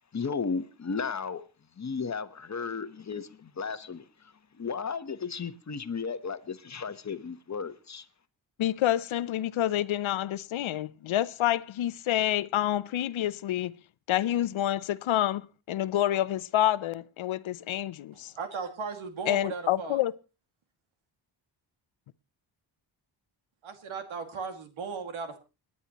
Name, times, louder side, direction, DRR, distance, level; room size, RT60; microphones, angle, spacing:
voice 1, 0.1-1.4 1.8-4.0 4.6-8.1, left 5 dB, 35° left, 1.1 m, -34 dB
voice 2, 8.6-13.7 14.1-18.3 19.3-20.1, left 12 dB, 80° left, 0.7 m, -28 dB
voice 3, 18.1-20.0 23.6-25.4, right 4 dB, 85° right, 2.3 m, -37 dB
29.5 x 9.9 x 3.0 m
cardioid pair, 95°, 47 cm